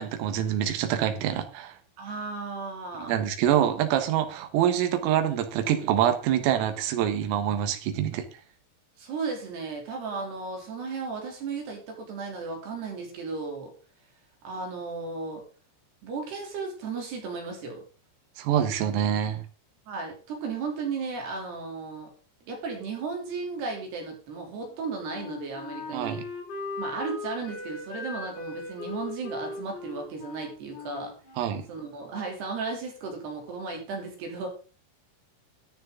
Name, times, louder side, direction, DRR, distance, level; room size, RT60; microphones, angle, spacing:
voice 1, 0.0-1.7 3.0-8.2 18.4-19.4 25.9-26.2 31.4-31.7, right 10 dB, 85° right, 7 dB, 4.2 m, -25 dB
voice 2, 2.0-3.2 9.0-13.7 14.4-15.4 16.0-17.8 19.9-22.1 22.5-26.2 26.8-31.1 31.7-34.5, right 4 dB, 55° right, 1 dB, 5.1 m, -35 dB
Wind instrument woodwind instrument, 24.6-32.1, left 4 dB, 90° left, 5.5 m, -39 dB
14.0 x 9.7 x 3.9 m, 0.37 s
omnidirectional pair, 5.8 m